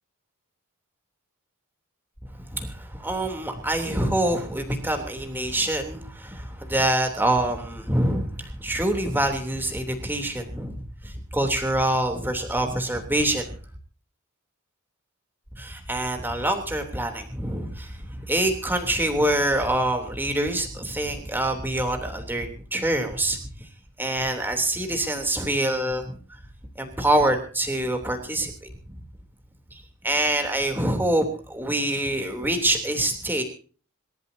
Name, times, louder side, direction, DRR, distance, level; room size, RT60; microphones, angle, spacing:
voice 1, 2.5-13.4 15.5-23.4 24.0-26.2 26.8-29.0 30.0-33.4, right 1 dB, 10° right, 4 dB, 3.2 m, -25 dB
26.5 x 13.5 x 2.8 m, 0.38 s
head